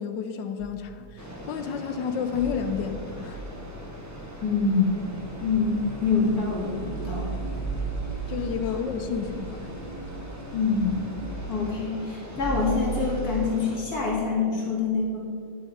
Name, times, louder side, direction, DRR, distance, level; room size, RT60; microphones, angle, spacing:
voice 1, 0.0-3.4 8.3-9.7, left 6 dB, 80° left, 1.4 m, -31 dB
sound 1, 0.6-1.5 2.3-6.3 6.8-6.9 7.1-14.0, right 1 dB, 10° left, 0.5 m, -39 dB
sound 2, 1.2-13.8, equal, 10° right, 0.9 m, -42 dB
sound 3, 3.3-11.4, right 4 dB, 35° right, 1.2 m, -37 dB
voice 2, 4.4-5.0 5.4-7.4 10.5-11.0 11.5-15.2, left 4 dB, 55° left, 2.7 m, -25 dB
10.5 x 7.8 x 5.0 m
omnidirectional pair, 2.0 m